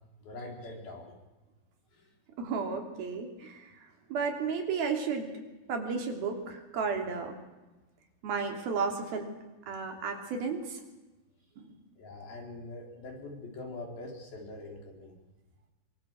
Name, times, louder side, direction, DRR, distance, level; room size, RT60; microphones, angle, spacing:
voice 1, 0.2-1.2 1.9-2.1 12.0-15.2, left 2 dB, 75° left, 1 dB, 6.1 m, -43 dB
voice 2, 2.4-5.3 5.7-7.4 8.2-9.3 9.7-10.8 11.6-11.7, right 5 dB, 80° right, 4 dB, 4.8 m, -33 dB
24.0 x 24.0 x 7.6 m, 1.1 s
omnidirectional pair, 4.3 m